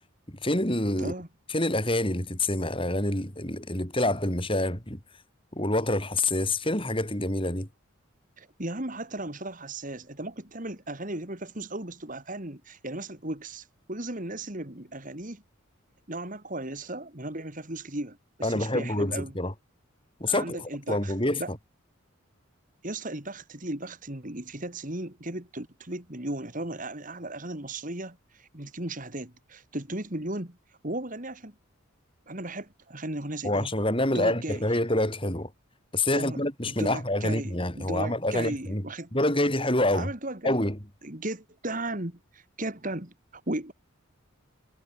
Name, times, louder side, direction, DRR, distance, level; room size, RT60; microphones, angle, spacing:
voice 1, 0.3-1.1 1.5-5.0 5.5-7.7 18.4-19.5 20.2-20.6 20.9-21.4 33.4-35.5 35.9-38.8 39.1-40.1 40.4-40.8, left 1 dB, 25° left, 5.4 m, -27 dB
voice 2, 1.0-1.3 8.4-15.4 16.1-19.3 20.3-21.5 22.8-30.6 30.8-31.5 32.3-33.7 34.1-34.6 36.1-36.4 36.7-39.1 39.9-40.5 41.0-43.7, right 1 dB, 40° right, 2.7 m, -36 dB
head